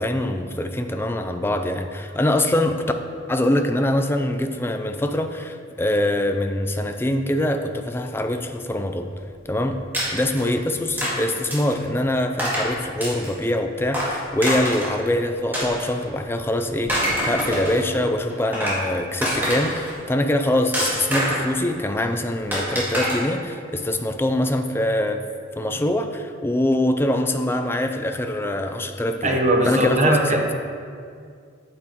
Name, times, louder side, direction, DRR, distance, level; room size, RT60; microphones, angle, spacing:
voice 1, 0.0-2.8 3.3-9.1 9.5-9.8 10.1-25.2 25.6-29.4 29.7-30.2, left 1 dB, 10° left, 6 dB, 0.4 m, -24 dB
sound 1, 9.9-10.4 11.0-11.1 11.5-11.8 12.4-12.7 13.0-13.4 13.9-14.9 15.5-16.2 16.7-17.8 18.3-18.8 19.2-19.9 20.7-21.5 22.5-23.1, equal, 10° right, 1.8 m, -25 dB
voice 2, 29.2-30.5, right 1 dB, 35° right, 1 dB, 0.9 m, -20 dB
8.7 x 8.4 x 3.0 m, 2.3 s
head